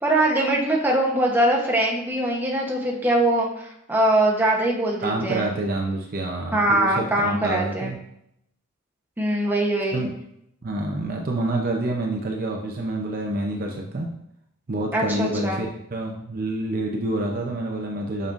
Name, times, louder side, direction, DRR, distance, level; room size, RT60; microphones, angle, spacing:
voice 1, 0.0-5.5 6.5-7.9 9.2-10.0 14.9-15.6, right 1 dB, 10° right, -2 dB, 0.9 m, -22 dB
voice 2, 5.0-8.0 9.9-10.1 10.6-14.1 14.7-18.3, right 2 dB, 40° right, 0 dB, 0.6 m, -27 dB
7.1 x 5.4 x 2.5 m, 0.77 s
head